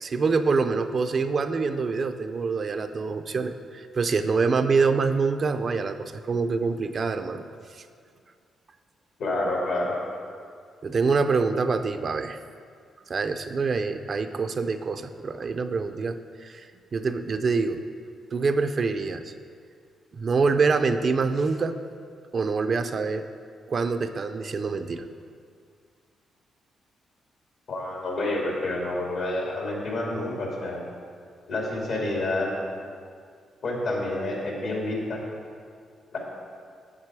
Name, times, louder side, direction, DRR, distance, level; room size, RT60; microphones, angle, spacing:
voice 1, 0.0-7.4 7.7-7.8 10.8-12.4 13.1-17.8 18.3-19.3 20.1-21.8 22.3-23.2 23.7-25.1, right 4 dB, 50° right, 9 dB, 0.5 m, -25 dB
voice 2, 9.2-10.0 27.7-30.8 31.5-32.5 33.6-35.2 36.1-36.2, left 2 dB, 75° left, -2 dB, 2.3 m, -28 dB
7.5 x 7.5 x 4.8 m, 2.2 s
cardioid pair, 80°, 0 cm